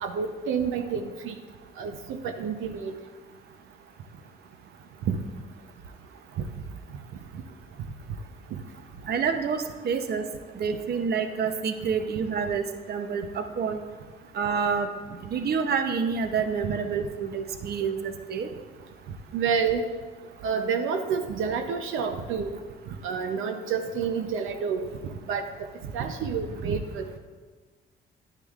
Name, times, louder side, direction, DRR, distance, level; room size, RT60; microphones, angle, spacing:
voice 1, 0.0-1.3 1.8-1.9 2.2-2.9 5.1-5.2 19.3-19.9 20.4-22.5 23.0-24.8 25.3-25.4 25.9-27.2, right 6 dB, 85° right, 5 dB, 0.7 m, -28 dB
voice 2, 9.1-10.2 10.5-13.8 14.3-14.9 15.2-18.5, right 6 dB, 55° right, 7 dB, 0.8 m, -28 dB
10.5 x 9.6 x 2.4 m, 1.5 s
cardioid pair, 90°, 20 cm